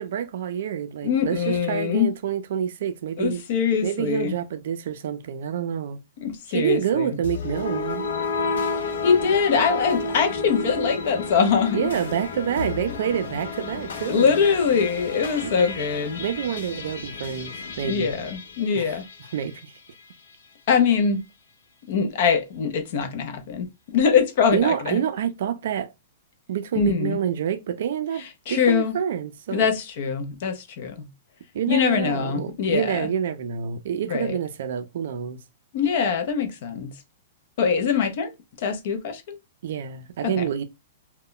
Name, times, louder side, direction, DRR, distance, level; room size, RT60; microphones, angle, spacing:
voice 1, 0.0-3.4 3.8-6.0 6.5-8.1 11.7-14.4 15.4-15.5 16.2-18.2 18.7-19.0 19.3-19.7 24.5-25.9 26.5-29.7 31.5-35.4 39.6-40.6, right 9 dB, 50° right, 0.4 m, -27 dB
voice 2, 1.0-2.1 3.2-4.3 6.2-7.2 9.0-11.8 14.1-16.2 17.8-19.0 20.7-21.2 21.9-25.0 26.8-27.2 28.5-29.0 29.5-31.1 31.7-33.1 34.1-34.4 35.7-36.9 37.6-38.3 38.6-39.4 40.2-40.4, left 6 dB, 40° left, 0.4 m, -23 dB
sound 1, 7.2-19.6, left 4 dB, 85° left, 0.6 m, -31 dB
2.1 x 2.1 x 3.7 m
hypercardioid pair, 180°, 0 cm